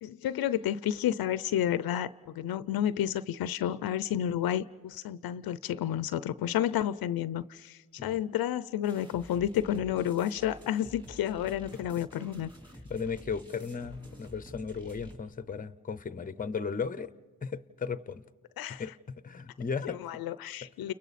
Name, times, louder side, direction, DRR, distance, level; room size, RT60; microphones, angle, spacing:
voice 1, 0.0-12.5 18.6-18.9 19.8-20.9, left 11 dB, 75° left, 0.6 m, -31 dB
sound 1, 8.8-15.2, equal, 15° right, 3.5 m, -49 dB
voice 2, 12.9-17.1 17.4-18.2 18.7-20.0, left 5 dB, 25° left, 0.7 m, -36 dB
30.0 x 29.5 x 4.2 m
cardioid pair, 90°, 37 cm